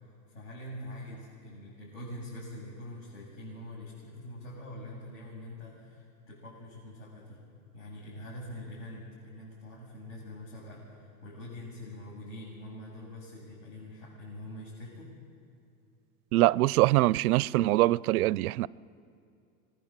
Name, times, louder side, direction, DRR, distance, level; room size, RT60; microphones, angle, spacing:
voice 1, 0.3-7.4 7.7-15.1, left 1 dB, 55° left, 7.6 m, -44 dB
voice 2, 16.3-18.7, right 17 dB, 75° right, 0.6 m, -23 dB
26.0 x 21.0 x 7.6 m
supercardioid pair, 160°, 44 cm